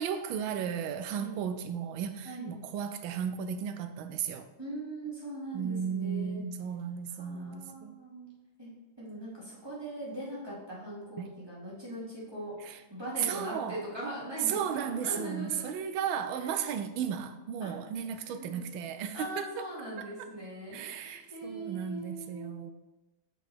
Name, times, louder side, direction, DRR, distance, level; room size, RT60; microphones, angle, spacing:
voice 1, 0.0-4.5 5.5-8.0 11.2-11.3 12.6-12.8 13.2-13.8 14.5-19.7 20.0-20.1 20.7-22.7, right 8 dB, 85° right, 8 dB, 1.4 m, -35 dB
voice 2, 2.2-2.6 4.6-6.4 7.1-8.3 8.6-8.7 9.0-15.8 16.4-16.5 17.6-17.7 18.1-18.6 19.1-22.5, right 1 dB, 10° right, -8 dB, 2.5 m, -41 dB
6.3 x 5.3 x 4.4 m, 1.1 s
omnidirectional pair, 2.1 m